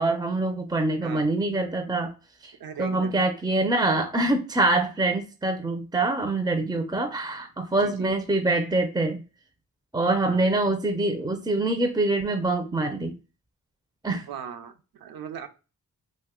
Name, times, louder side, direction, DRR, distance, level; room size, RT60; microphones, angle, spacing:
voice 1, 0.0-2.1 2.4-2.5 2.8-9.2 9.9-13.2 14.0-14.3, right 2 dB, 10° right, 5 dB, 0.5 m, -25 dB
voice 2, 2.6-3.2 7.8-8.1 10.2-10.4 14.1-15.5, right 7 dB, 75° right, 6 dB, 0.6 m, -38 dB
2.5 x 2.1 x 3.6 m, 0.33 s
cardioid pair, 55°, 36 cm